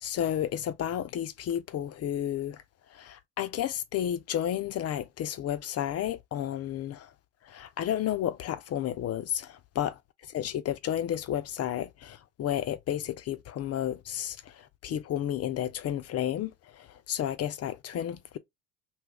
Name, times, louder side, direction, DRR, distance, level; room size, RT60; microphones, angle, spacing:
voice 1, 0.0-2.6 2.9-7.1 7.4-10.0 10.3-18.4, left 11 dB, 40° left, 0.5 m, -32 dB
2.8 x 2.4 x 3.3 m
hypercardioid pair, 75°, 37 cm